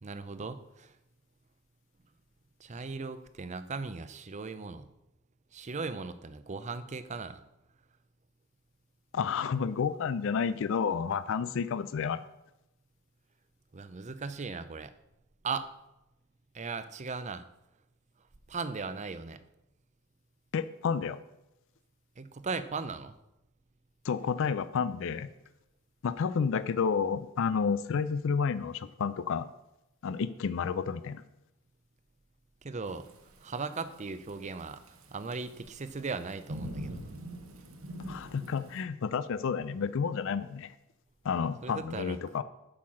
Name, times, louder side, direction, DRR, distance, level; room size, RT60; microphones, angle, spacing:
voice 1, 0.0-0.9 2.6-4.9 5.5-7.4 13.7-14.9 15.4-15.7 16.5-17.4 18.5-19.4 22.2-23.2 32.6-33.1 33.4-34.8 35.1-37.0 41.6-42.2, right 4 dB, 35° right, 12 dB, 0.5 m, -38 dB
voice 2, 9.1-12.2 20.5-21.2 24.0-25.3 26.0-29.5 30.0-31.2 38.1-40.7 41.2-42.4, left 6 dB, 60° left, 14 dB, 0.4 m, -30 dB
Thunderstorm / Rain, 32.8-38.8, right 1 dB, 70° right, 1.2 m, -44 dB
8.6 x 5.7 x 6.3 m, 0.91 s
head